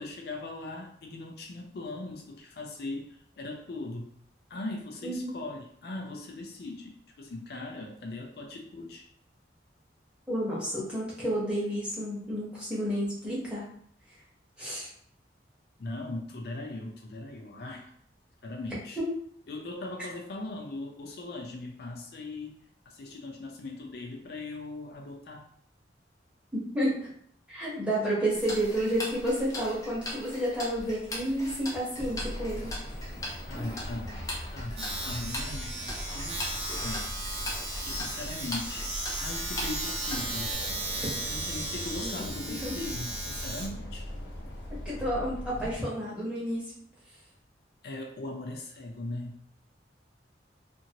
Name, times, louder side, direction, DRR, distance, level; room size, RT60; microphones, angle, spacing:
voice 1, 0.0-4.1 4.5-9.0 15.8-17.9 18.4-19.0 19.5-22.5 22.9-25.5 33.5-37.1 37.8-38.9 39.2-40.5 41.3-44.1 47.8-49.4, left 2 dB, 60° left, 1 dB, 0.4 m, -39 dB
voice 2, 10.3-13.7 14.6-14.9 26.7-27.0 27.5-32.7 42.0-42.7 44.8-46.6, equal, 5° right, -7 dB, 1.0 m, -30 dB
Tick-tock, 28.3-40.5, left 1 dB, 20° left, 0.6 m, -40 dB
sound 1, 31.9-45.8, left 1 dB, 75° left, 0.8 m, -41 dB
Domestic sounds home sounds, 34.8-45.1, right 2 dB, 65° right, 0.7 m, -36 dB
2.7 x 2.5 x 2.8 m, 0.64 s
head